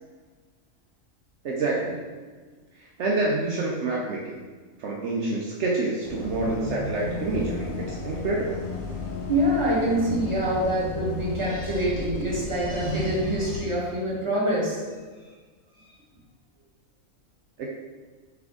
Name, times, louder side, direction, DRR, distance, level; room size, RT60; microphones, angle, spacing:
voice 1, 1.4-2.0 2.8-4.4 4.8-8.6 17.6-17.7, right 2 dB, 65° right, -3 dB, 0.7 m, -27 dB
sound 1, 6.0-13.6, left 3 dB, 70° left, 1.0 m, -34 dB
voice 2, 9.3-14.8, right 1 dB, 25° right, -7 dB, 1.0 m, -25 dB
3.7 x 3.4 x 3.5 m, 1.4 s
omnidirectional pair, 1.5 m